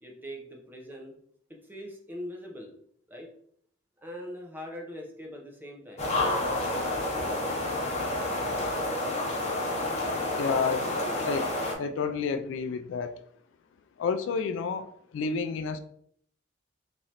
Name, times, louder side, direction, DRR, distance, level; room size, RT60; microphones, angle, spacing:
voice 1, 0.0-1.2 1.5-2.8 3.1-3.3 4.0-6.1 10.5-11.3, equal, 10° right, 0 dB, 0.6 m, -42 dB
sound 1, 6.0-11.7, left 1 dB, 35° left, 0.7 m, -29 dB
voice 2, 10.4-10.9 11.2-11.5 11.8-13.1 14.0-15.8, left 5 dB, 70° left, 9 dB, 0.3 m, -30 dB
3.7 x 3.1 x 2.8 m, 0.65 s
head